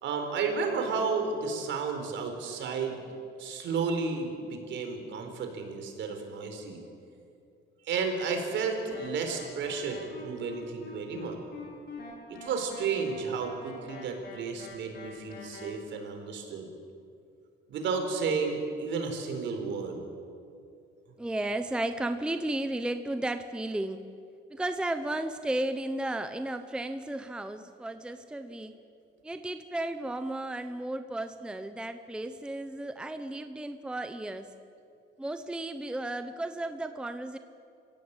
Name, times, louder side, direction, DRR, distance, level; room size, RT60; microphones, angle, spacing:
voice 1, 0.0-3.0 3.4-6.8 7.9-11.4 12.3-16.7 17.7-20.0, right 5 dB, 65° right, 5 dB, 4.2 m, -32 dB
sound 1, 8.2-15.7, left 3 dB, 55° left, 5.1 m, -45 dB
voice 2, 21.2-24.0 24.5-28.7 29.2-34.5 35.2-37.4, right 1 dB, 5° right, 9 dB, 0.7 m, -34 dB
27.5 x 16.0 x 8.9 m, 2.5 s
cardioid pair, 160°, 20 cm